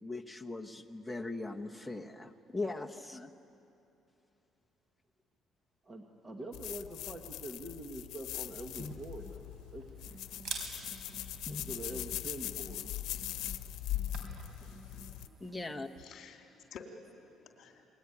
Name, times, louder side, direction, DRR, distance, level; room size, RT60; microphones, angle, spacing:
voice 1, 0.0-3.3 8.8-8.9 11.5-11.6 15.4-15.9, left 2 dB, 5° left, 2 dB, 1.1 m, -40 dB
voice 2, 5.8-9.8 11.5-12.9, right 1 dB, 20° right, 3 dB, 1.5 m, -44 dB
sound 1, 6.5-15.3, left 13 dB, 90° left, 0.8 m, -41 dB
Camera, 8.7-14.5, right 5 dB, 70° right, 4.4 m, -48 dB
sound 2, 9.9-16.1, right 4 dB, 45° right, 1.2 m, -55 dB
voice 3, 14.9-15.4 16.0-17.9, left 5 dB, 55° left, 3 dB, 2.9 m, -52 dB
28.5 x 21.5 x 9.8 m, 2.8 s
cardioid pair, 160°, 0 cm